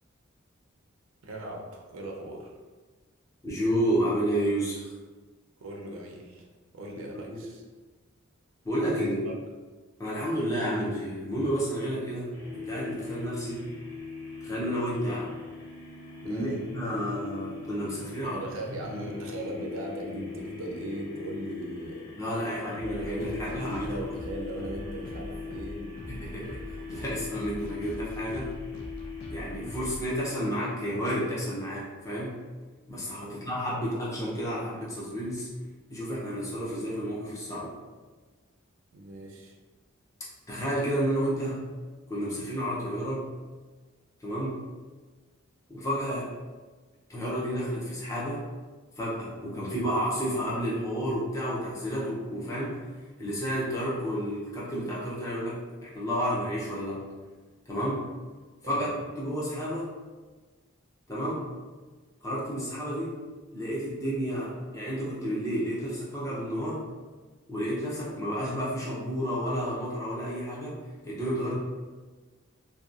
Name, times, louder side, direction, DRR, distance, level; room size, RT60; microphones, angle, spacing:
voice 1, 1.2-2.5 5.6-6.5 6.7-7.6 8.8-9.2 16.2-16.6 18.2-22.0 22.6-25.9 33.2-33.5 38.9-39.5 58.6-58.9, right 1 dB, 75° right, 0 dB, 0.5 m, -38 dB
voice 2, 3.4-4.9 7.1-7.4 8.6-9.2 10.0-13.7 14.4-15.4 16.2-18.4 19.0-19.1 22.2-23.8 26.1-28.5 29.3-32.4 32.9-35.5 35.9-37.8 40.5-41.6 42.1-43.3 44.2-44.6 45.7-46.3 47.1-48.5 49.0-57.1 57.7-58.1 58.6-60.0 61.1-61.5 62.2-63.3 63.5-66.9 67.5-71.5, equal, 15° left, -7 dB, 0.6 m, -31 dB
sound 1, 12.3-30.6, left 5 dB, 70° left, 0.9 m, -41 dB
sound 2, 22.7-31.1, equal, 85° left, 0.4 m, -43 dB
2.8 x 2.2 x 2.4 m, 1.3 s
head